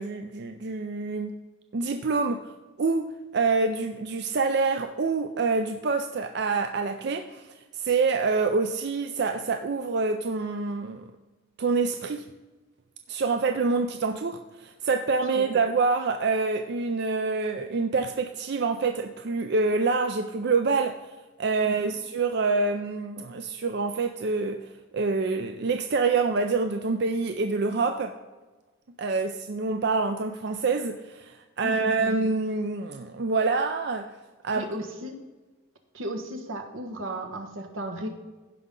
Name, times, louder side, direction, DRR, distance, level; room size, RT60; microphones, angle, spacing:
voice 1, 0.0-1.3 1.7-2.4 2.8-7.5 7.7-11.1 11.6-12.3 13.1-21.0 21.4-24.7 24.9-28.1 29.0-34.1 34.4-34.7, right 4 dB, 55° right, 7 dB, 0.5 m, -26 dB
voice 2, 31.6-32.2 34.5-35.2 35.9-38.1, right 1 dB, 85° right, 4 dB, 1.4 m, -35 dB
15.5 x 5.4 x 3.8 m, 1.2 s
head